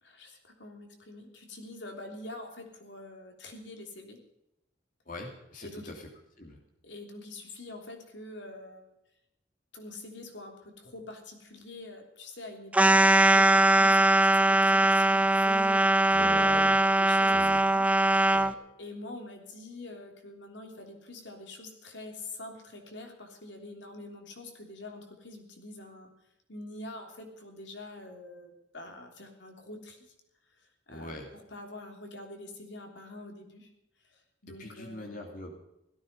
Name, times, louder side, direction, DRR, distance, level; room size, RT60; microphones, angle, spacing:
voice 1, 0.0-4.2 5.6-5.9 6.8-8.9 9.7-18.3 18.8-26.1 26.5-30.1 30.4-31.2 31.5-33.7 34.0-35.2, left 2 dB, 75° left, 3 dB, 3.3 m, -45 dB
voice 2, 5.0-6.1 6.4-6.6 16.1-16.7 17.3-17.6 18.3-18.6 30.9-31.3 34.6-35.5, left 1 dB, 45° left, 2 dB, 2.9 m, -42 dB
sound 1, 12.7-18.5, right 2 dB, 5° right, 0.5 m, -21 dB
17.0 x 14.5 x 5.5 m, 0.85 s
head